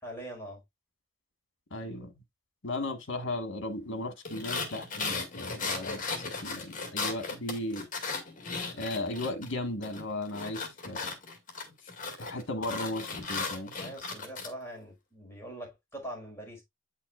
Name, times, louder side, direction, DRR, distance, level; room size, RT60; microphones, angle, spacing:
voice 1, 0.0-0.6 13.7-16.6, right 1 dB, 15° left, 4.7 m, -42 dB
voice 2, 1.7-2.1 2.6-6.2 6.4-7.9 8.7-11.1 12.2-13.7, left 1 dB, 70° left, 1.6 m, -36 dB
sound 1, 4.2-9.5 9.8-14.5, left 4 dB, 45° left, 2.2 m, -36 dB
9.2 x 5.8 x 2.4 m
head